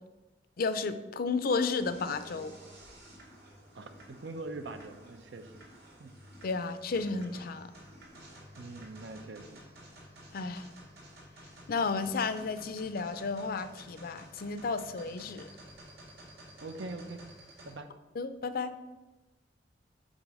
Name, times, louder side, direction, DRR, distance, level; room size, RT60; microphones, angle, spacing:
voice 1, 0.6-2.5 6.4-7.7 10.3-10.7 11.7-15.5 18.2-18.7, left 4 dB, 55° left, 12 dB, 0.5 m, -32 dB
sound 1, 1.7-17.7, right 1 dB, 60° right, 2.2 m, -52 dB
voice 2, 3.7-5.5 6.0-6.1 8.6-9.7 16.6-17.2 17.6-17.9, right 2 dB, 80° right, 8 dB, 0.7 m, -43 dB
6.2 x 4.2 x 6.2 m, 1.1 s
head